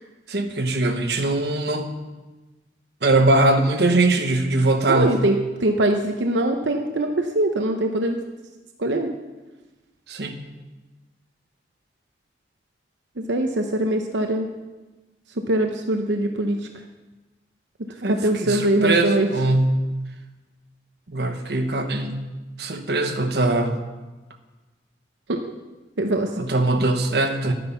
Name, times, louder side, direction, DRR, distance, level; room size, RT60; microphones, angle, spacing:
voice 1, 0.3-1.9 3.0-5.1 10.1-10.4 18.0-19.8 21.1-22.2 22.6-23.8 26.4-27.5, right 2 dB, 65° right, 5 dB, 1.2 m, -21 dB
voice 2, 4.9-8.2 8.8-9.1 13.3-14.5 15.5-16.6 18.1-19.3 25.3-25.4 26.0-26.3, right 1 dB, 85° right, 4 dB, 0.9 m, -22 dB
12.0 x 9.4 x 5.8 m, 1.2 s
head